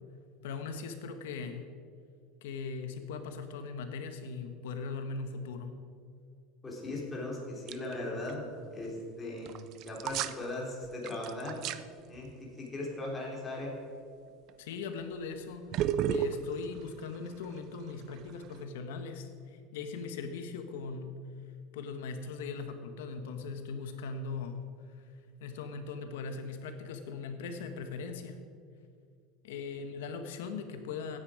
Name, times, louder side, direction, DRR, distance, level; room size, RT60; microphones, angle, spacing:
voice 1, 0.4-1.6 2.4-5.7 14.6-21.1 21.7-24.6 24.9-25.0 25.4-28.4 29.4-31.2, left 4 dB, 90° left, 7 dB, 1.5 m, -39 dB
voice 2, 6.6-8.4 8.7-11.6 12.1-13.7 29.8-29.9, left 2 dB, 15° left, -4 dB, 3.5 m, -38 dB
sound 1, 7.7-7.9 8.3-8.4 9.5-10.4 10.8-11.8 14.5-14.7 15.7-18.6, right 10 dB, 45° right, 0.5 m, -33 dB
15.5 x 9.6 x 5.1 m, 2.2 s
supercardioid pair, 145°, 0 cm